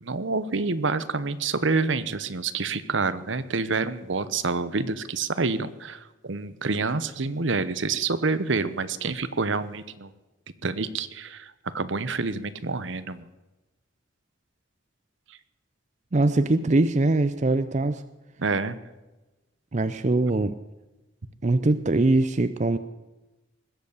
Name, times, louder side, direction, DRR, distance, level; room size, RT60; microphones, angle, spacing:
voice 1, 0.0-10.1 10.6-13.3 18.4-18.8, right 4 dB, 70° right, 14 dB, 0.9 m, -27 dB
voice 2, 16.1-18.0 19.7-20.5 21.4-22.8, right 2 dB, 35° right, 12 dB, 0.5 m, -22 dB
20.0 x 8.2 x 8.3 m, 1.1 s
head